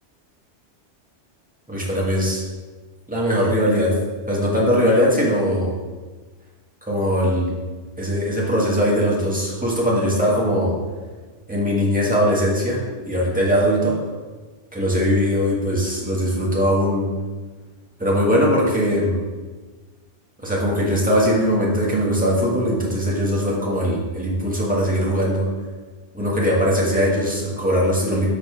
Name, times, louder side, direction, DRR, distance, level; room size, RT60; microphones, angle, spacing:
voice 1, 1.7-2.4 3.1-4.0 4.3-5.7 6.9-7.5 8.0-10.7 11.5-14.0 14.7-17.1 18.0-19.2 20.4-25.5 26.1-28.3, equal, 5° right, -5 dB, 1.6 m, -20 dB
6.9 x 4.2 x 5.1 m, 1.4 s
omnidirectional pair, 1.2 m